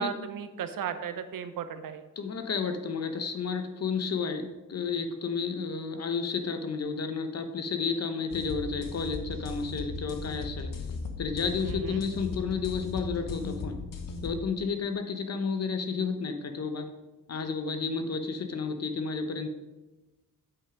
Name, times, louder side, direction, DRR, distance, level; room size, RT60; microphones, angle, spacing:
voice 1, 0.0-2.0 11.6-12.0, right 8 dB, 75° right, 10 dB, 0.8 m, -35 dB
voice 2, 2.2-10.7 11.2-13.8 14.2-16.9 17.3-19.5, left 5 dB, 45° left, 7 dB, 0.9 m, -31 dB
sound 1, 8.3-14.3, left 4 dB, 70° left, 1.2 m, -37 dB
8.3 x 5.9 x 5.0 m, 1.1 s
wide cardioid pair, 120°, 34 cm